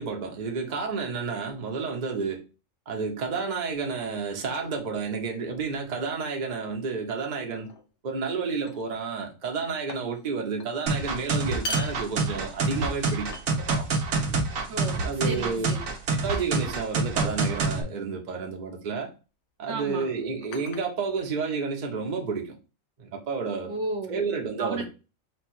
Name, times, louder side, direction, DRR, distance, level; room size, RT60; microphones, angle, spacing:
voice 1, 0.0-2.4 2.9-7.7 8.0-13.9 15.0-15.7 16.1-19.1 19.6-22.5 23.0-23.7 24.1-24.8, right 5 dB, 40° right, 0.8 m, -31 dB
sound 1, 7.5-7.9 8.7-9.1 9.4-10.3 10.6-10.8 11.4-12.8 13.3-13.9 14.8-15.2 16.2-16.5 17.2-17.6 18.7-18.9 19.9-21.6, left 1 dB, 65° left, 1.0 m, -41 dB
sound 2, 10.9-17.8, right 3 dB, 90° right, 1.2 m, -27 dB
voice 2, 14.7-15.8 19.7-20.1 23.7-24.2 24.6-24.8, right 3 dB, 60° right, 1.1 m, -33 dB
4.3 x 2.3 x 4.4 m
omnidirectional pair, 1.4 m